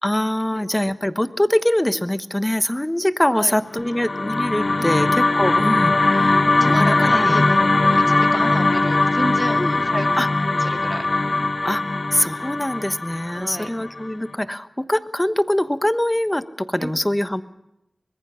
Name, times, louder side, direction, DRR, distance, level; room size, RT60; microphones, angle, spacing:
voice 1, 0.0-6.5 6.8-7.5 8.3-8.4 9.6-9.8 10.2-10.3 11.6-17.4, left 1 dB, 15° left, 11 dB, 1.2 m, -23 dB
sound 1, 3.8-14.1, left 2 dB, 50° left, 0.8 m, -20 dB
voice 2, 6.5-10.3 10.6-11.1 13.3-13.7 16.8-16.9, right 1 dB, 30° right, 5 dB, 2.2 m, -31 dB
24.5 x 21.0 x 5.6 m, 0.86 s
cardioid pair, 45°, 0 cm